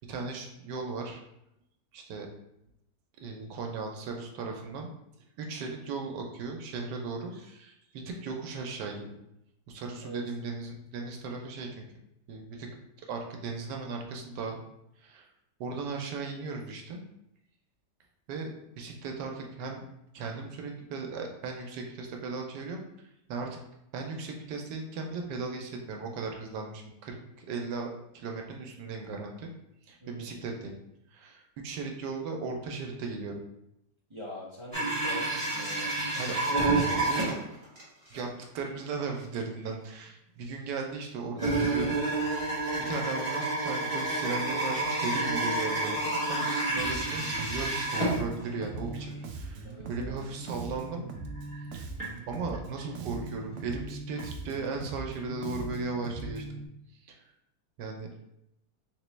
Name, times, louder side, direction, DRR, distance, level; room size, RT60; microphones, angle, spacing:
voice 1, 0.1-1.2 1.9-2.3 3.2-4.9 5.4-9.2 9.7-11.9 12.3-12.7 13.0-14.6 15.0-15.3 15.6-17.0 18.3-18.5 18.8-19.8 20.1-22.9 23.3-23.6 23.9-27.9 28.1-29.5 29.9-30.8 31.1-33.4 36.2-36.3 37.0-37.3 38.1-38.3 38.5-42.0 42.3-51.1 51.7-51.8 52.3-56.6 57.0-57.2 57.8-58.1, right 4 dB, 85° right, 2 dB, 1.3 m, -37 dB
voice 2, 34.1-36.3 49.6-50.3, left 1 dB, 45° right, -7 dB, 0.3 m, -43 dB
sound 1, 34.7-37.8 38.1-38.2 38.7-38.8 39.5-39.6 41.4-48.7 49.0-49.1 49.8-49.9 50.4-50.6 51.1-52.0 52.5-52.9 54.2-54.3 54.5-54.6, right 2 dB, 20° right, 1.5 m, -29 dB
Bass guitar, 46.8-56.7, right 3 dB, 70° right, 0.8 m, -41 dB
3.9 x 2.9 x 3.2 m, 0.83 s
omnidirectional pair, 1.8 m